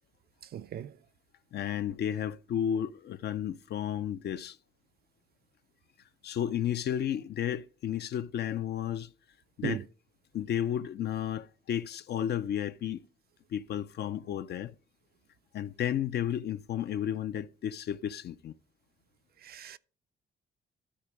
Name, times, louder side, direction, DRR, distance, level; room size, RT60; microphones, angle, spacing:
voice 1, 0.5-1.0 9.6-9.8 19.4-19.8, right 10 dB, 50° right, 0.4 m, -37 dB
voice 2, 1.5-4.6 6.2-9.1 9.6-9.8 10.3-13.0 13.5-14.7 15.5-18.5, left 10 dB, 55° left, 0.4 m, -32 dB
13.0 x 4.4 x 4.9 m
cardioid pair, 90°, 20 cm